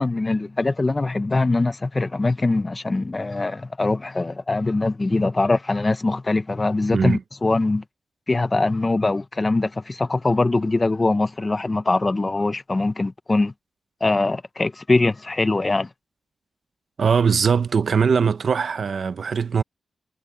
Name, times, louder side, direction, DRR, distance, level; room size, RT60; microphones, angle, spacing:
voice 1, 0.0-7.8 8.3-13.5 14.0-15.9, left 2 dB, 25° left, 0.6 m, -22 dB
voice 2, 17.0-19.6, right 6 dB, 55° right, 0.6 m, -20 dB
wide cardioid pair, 145°, 0 cm